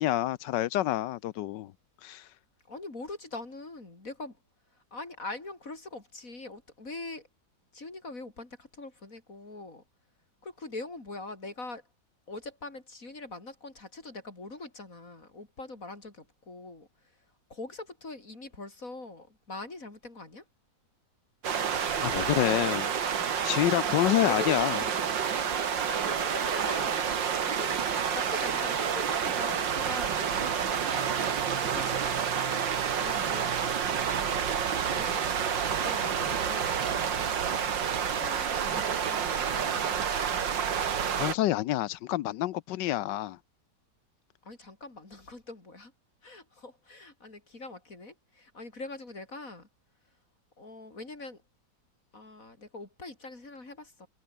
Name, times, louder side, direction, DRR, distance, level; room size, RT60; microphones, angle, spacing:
voice 1, 0.0-1.7 2.0-2.3 22.0-22.9 23.4-24.8 41.2-43.4, left 14 dB, 75° left, 1.3 m, -27 dB
voice 2, 2.7-4.4 4.7-7.3 7.7-9.8 10.4-11.9 12.3-17.2 17.5-20.4 24.0-25.0 25.9-27.1 27.4-27.8 28.1-31.1 31.6-34.6 34.9-35.2 35.7-37.4 38.0-40.1 44.4-45.9 46.2-49.7 50.6-51.4 52.1-54.1, left 2 dB, 45° left, 5.0 m, -43 dB
sound 1, 21.4-41.3, right 7 dB, 80° right, 2.4 m, -29 dB
omnidirectional pair, 2.0 m